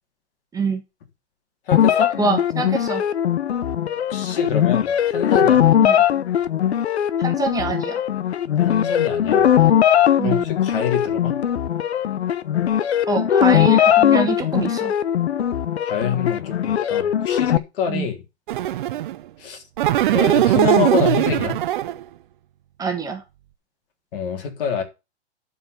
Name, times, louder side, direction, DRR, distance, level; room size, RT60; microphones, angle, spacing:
sound 1, 1.7-17.6, left 10 dB, 70° left, 0.9 m, -19 dB
voice 1, 1.7-2.1 4.1-5.7 8.6-9.5 10.2-11.4 15.8-18.2 19.4-19.6 20.1-21.6 24.1-24.8, left 7 dB, 55° left, 3.4 m, -26 dB
voice 2, 2.2-3.0 5.8-6.0 7.2-8.0 10.2-10.4 13.1-14.9 17.9-18.1 22.8-23.2, right 4 dB, 10° right, 1.5 m, -25 dB
sound 2, 18.5-19.2 19.8-22.0, right 13 dB, 45° right, 0.7 m, -19 dB
11.0 x 5.0 x 6.7 m
hypercardioid pair, 135°, 34 cm